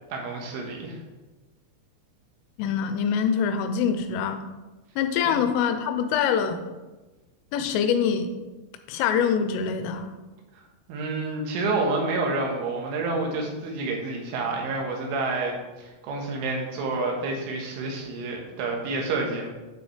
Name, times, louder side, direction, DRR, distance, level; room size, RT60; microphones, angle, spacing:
voice 1, 0.1-1.0 5.3-5.4 10.9-19.5, right 3 dB, 75° right, 0 dB, 3.8 m, -29 dB
voice 2, 2.6-4.5 5.0-6.6 7.5-8.3 8.9-10.1, left 7 dB, 85° left, 8 dB, 3.2 m, -24 dB
9.7 x 7.1 x 3.3 m, 1.2 s
omnidirectional pair, 5.7 m